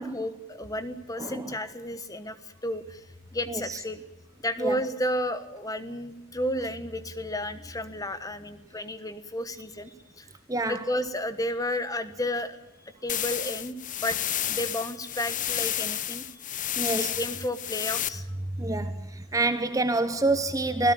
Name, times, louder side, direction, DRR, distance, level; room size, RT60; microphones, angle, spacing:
voice 1, 0.0-3.1 3.3-4.0 4.4-10.3 10.7-14.2 14.5-16.4 16.8-18.3, left 1 dB, 15° left, 1.3 m, -32 dB
voice 2, 3.5-3.8 4.6-4.7 10.5-10.8 16.8-17.1 18.6-20.9, right 2 dB, 15° right, 0.9 m, -27 dB
sound 1, 13.1-18.1, left 11 dB, 35° left, 0.9 m, -31 dB
26.0 x 17.0 x 8.6 m
head